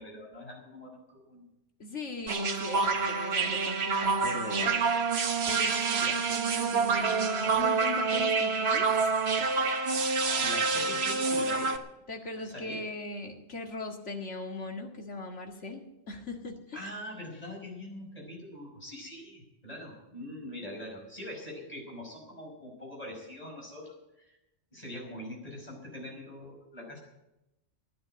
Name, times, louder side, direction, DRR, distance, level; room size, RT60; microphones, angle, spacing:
voice 1, 0.0-1.5 10.4-11.7 12.3-12.8 16.7-24.4 24.7-27.0, left 1 dB, 35° left, -1 dB, 5.6 m, -43 dB
voice 2, 1.8-4.8 5.5-8.9 12.1-16.9, left 2 dB, 85° left, 2 dB, 2.3 m, -39 dB
sound 1, 2.3-11.8, right 4 dB, 65° right, 1.3 m, -27 dB
15.5 x 10.0 x 7.8 m, 0.91 s
omnidirectional pair, 1.2 m